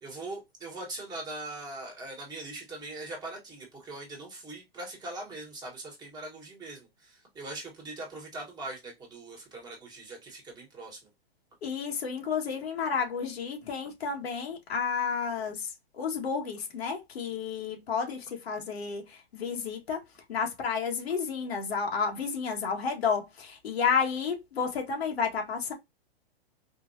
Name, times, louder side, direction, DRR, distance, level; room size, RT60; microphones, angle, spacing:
voice 1, 0.0-11.0, right 2 dB, 15° right, 1.3 m, -41 dB
voice 2, 11.6-20.0 20.3-25.7, left 6 dB, 85° left, 1.6 m, -31 dB
4.4 x 2.6 x 2.6 m
hypercardioid pair, 150°, 30 cm